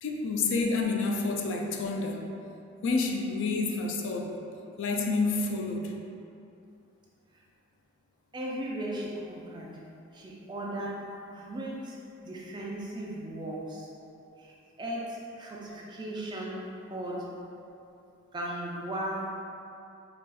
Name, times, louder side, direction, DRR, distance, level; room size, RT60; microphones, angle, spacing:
voice 1, 0.0-2.2 2.8-4.4 4.8-5.9, left 3 dB, 60° left, 1 dB, 0.3 m, -29 dB
voice 2, 8.3-9.8 10.1-12.0 12.2-13.9 14.4-17.3 18.3-19.3, right 1 dB, 20° right, -4 dB, 0.4 m, -37 dB
4.1 x 2.3 x 2.3 m, 2.6 s
head